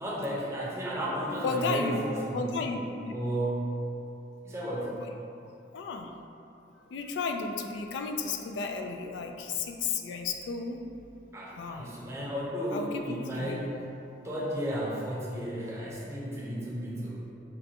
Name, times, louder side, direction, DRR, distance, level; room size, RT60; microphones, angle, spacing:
voice 1, 0.0-2.6 3.1-3.7 4.4-5.0 11.3-13.8 14.2-17.2, equal, 15° right, -6 dB, 0.6 m, -33 dB
voice 2, 1.4-2.0 2.3-3.1 5.7-6.1 6.9-10.8 11.6-11.9 12.7-13.6, left 4 dB, 90° left, 4 dB, 0.3 m, -33 dB
5.1 x 2.2 x 2.8 m, 2.8 s
head